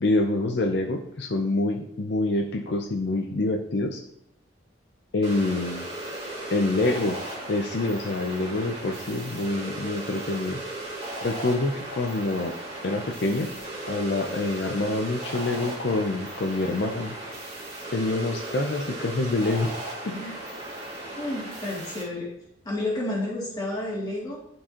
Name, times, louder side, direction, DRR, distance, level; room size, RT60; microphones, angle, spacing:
voice 1, 0.0-4.0 5.1-5.9 6.5-7.2 7.5-10.6 11.2-12.5 12.8-13.5 13.9-17.2 17.9-19.7 20.0-20.2, left 2 dB, 65° left, 3 dB, 0.5 m, -26 dB
sound 1, 5.2-22.0, right 1 dB, 30° right, 1.9 m, -36 dB
voice 2, 21.1-22.3 22.6-24.4, left 1 dB, 20° left, -5 dB, 2.2 m, -31 dB
11.0 x 4.6 x 2.9 m, 0.75 s
head